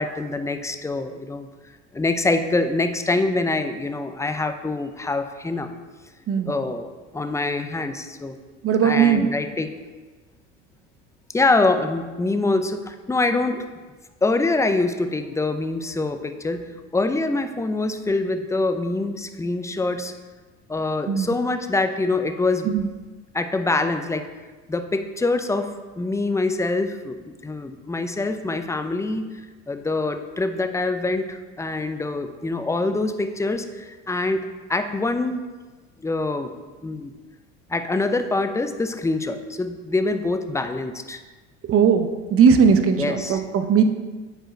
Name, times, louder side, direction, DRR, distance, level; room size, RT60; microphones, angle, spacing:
voice 1, 0.0-1.5 1.9-5.7 6.5-8.4 8.8-9.7 11.3-13.7 14.2-20.1 20.7-22.7 23.3-24.3 24.7-25.7 26.0-29.3 29.7-35.4 36.0-36.5 36.8-37.1 37.7-41.2 43.0-43.4, left 2 dB, 10° left, 8 dB, 0.5 m, -25 dB
voice 2, 8.6-9.3 21.1-21.3 22.6-22.9 41.7-43.8, right 6 dB, 35° right, 7 dB, 0.8 m, -18 dB
8.0 x 4.4 x 4.5 m, 1.3 s
hypercardioid pair, 85°, 37 cm